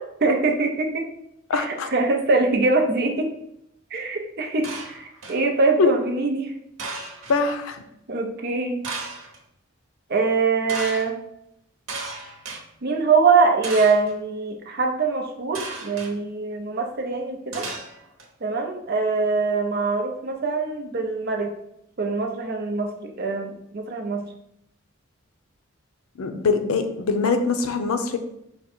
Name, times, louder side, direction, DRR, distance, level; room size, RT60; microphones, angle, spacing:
voice 1, 0.2-1.1 1.5-3.3 3.9-6.5 8.1-8.9 10.1-11.2 12.8-17.6 18.4-21.5 22.0-24.2, right 4 dB, 50° right, 3 dB, 0.6 m, -23 dB
voice 2, 1.5-1.9 5.8-5.9 7.3-7.8 26.2-28.2, left 4 dB, 90° left, 7 dB, 0.5 m, -22 dB
sound 1, 4.6-5.5 6.8-7.4 8.8-9.4 10.7-11.1 11.9-12.6 13.6-14.1 15.5-16.1 17.5-18.2, right 3 dB, 90° right, 0.9 m, -34 dB
4.9 x 2.2 x 4.3 m, 0.77 s
head